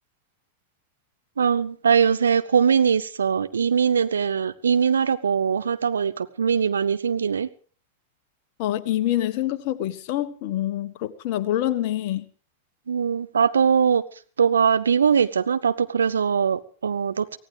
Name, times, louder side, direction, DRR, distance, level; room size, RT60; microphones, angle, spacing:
voice 1, 1.4-7.5 12.9-14.0 14.4-17.4, right 7 dB, 70° right, 11 dB, 0.9 m, -21 dB
voice 2, 8.6-12.3, left 13 dB, 45° left, 11 dB, 1.3 m, -26 dB
24.0 x 16.5 x 3.4 m, 0.41 s
figure-of-eight pair, 90°, 0 cm